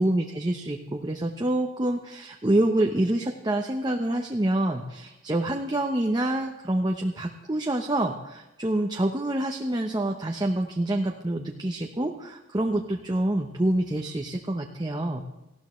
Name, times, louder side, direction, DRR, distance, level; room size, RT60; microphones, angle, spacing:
voice 1, 0.0-15.2, right 1 dB, 20° right, 2 dB, 0.9 m, -27 dB
19.0 x 15.5 x 3.2 m, 1.0 s
head